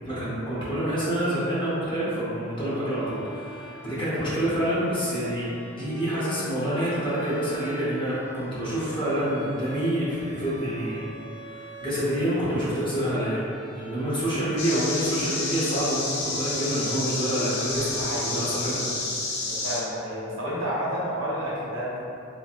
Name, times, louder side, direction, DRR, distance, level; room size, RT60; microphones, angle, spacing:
voice 1, 0.0-11.0 11.3-13.4 13.7-18.8 19.2-19.4, equal, 25° left, -9 dB, 0.8 m, -27 dB
Bowed string instrument, 2.7-18.8, right 1 dB, 10° right, 0.9 m, -43 dB
sound 1, 14.6-19.8, left 2 dB, 55° left, 0.6 m, -30 dB
voice 2, 18.0-18.4 19.4-22.0, equal, 75° right, -6 dB, 0.8 m, -30 dB
3.0 x 2.9 x 2.4 m, 2.7 s
head